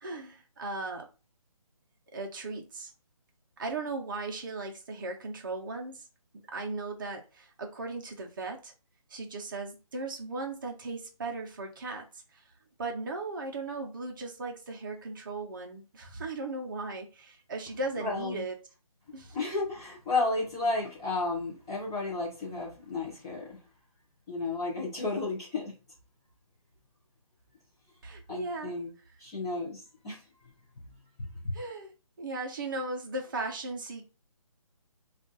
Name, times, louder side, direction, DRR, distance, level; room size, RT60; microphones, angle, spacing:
voice 1, 0.0-1.1 2.1-2.9 3.6-6.0 6.5-8.7 9.1-12.0 12.8-18.6 19.1-19.4 28.0-28.7 31.5-31.9 32.2-34.1, right 3 dB, 35° right, 2 dB, 0.6 m, -37 dB
voice 2, 18.0-18.4 19.3-23.6 24.3-25.7 28.3-28.9 29.2-30.2 31.2-31.6, left 3 dB, 10° left, -7 dB, 0.4 m, -32 dB
2.4 x 2.3 x 3.8 m, 0.32 s
figure-of-eight pair, 160°, 18 cm